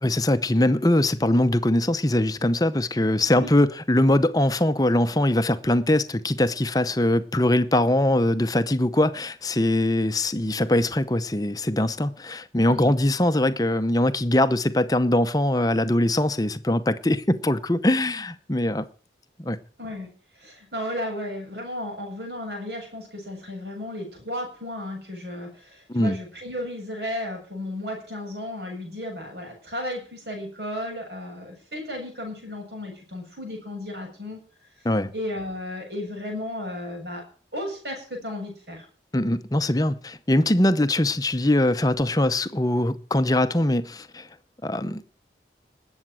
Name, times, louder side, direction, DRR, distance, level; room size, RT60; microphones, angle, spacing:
voice 1, 0.0-18.8 19.4-19.6 25.9-26.2 34.8-35.1 39.1-44.3 44.6-45.0, left 1 dB, 20° left, 0.8 m, -22 dB
voice 2, 19.8-20.1 20.4-34.4 35.1-37.2 37.5-38.9, left 1 dB, 65° right, 7.9 m, -34 dB
20.0 x 8.0 x 6.3 m
head